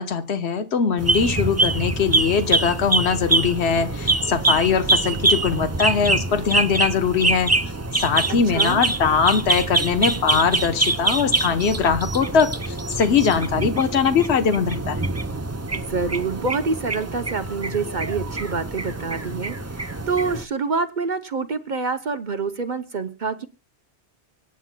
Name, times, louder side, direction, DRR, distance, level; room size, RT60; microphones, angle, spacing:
voice 1, 0.0-7.5 8.0-15.0, left 6 dB, 75° left, 9 dB, 1.3 m, -21 dB
sound 1, 1.0-20.4, right 3 dB, 20° right, 0.5 m, -24 dB
voice 2, 8.3-8.8 15.7-23.5, right 4 dB, 50° right, 9 dB, 0.9 m, -27 dB
25.0 x 9.2 x 2.2 m, 0.31 s
omnidirectional pair, 1.1 m